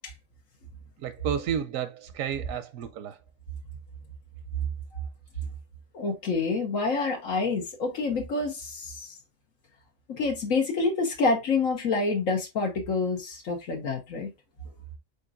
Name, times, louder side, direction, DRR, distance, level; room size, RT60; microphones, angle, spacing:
voice 1, 1.0-3.2, right 8 dB, 85° right, 1.0 m, -31 dB
voice 2, 5.9-9.1 10.1-14.3, left 3 dB, 80° left, 1.5 m, -27 dB
5.2 x 4.1 x 2.4 m
omnidirectional pair, 1.4 m